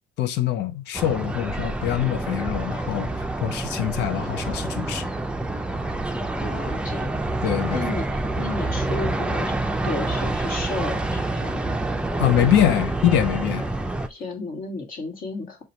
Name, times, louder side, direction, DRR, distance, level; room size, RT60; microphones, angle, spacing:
voice 1, 0.2-5.0 7.4-7.8 12.2-13.7, left 11 dB, 80° left, 0.6 m, -24 dB
sound 1, 0.9-14.1, right 2 dB, 5° right, 0.4 m, -27 dB
voice 2, 6.3-7.2 7.7-9.5 9.8-11.6 14.1-15.6, left 3 dB, 55° left, 1.7 m, -33 dB
6.3 x 2.3 x 2.8 m
cardioid pair, 110°, 17 cm